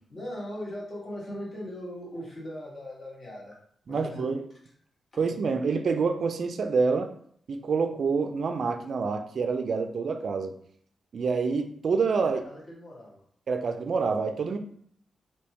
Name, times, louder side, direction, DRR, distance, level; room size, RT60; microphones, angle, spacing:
voice 1, 0.1-3.6 3.9-4.3 12.2-13.2, left 1 dB, 35° left, -4 dB, 1.4 m, -39 dB
voice 2, 3.9-4.4 5.2-7.1 7.5-10.5 11.1-12.4 13.5-14.6, right 5 dB, 55° right, 7 dB, 0.3 m, -27 dB
3.5 x 2.7 x 2.8 m, 0.63 s
wide cardioid pair, 130°, 0 cm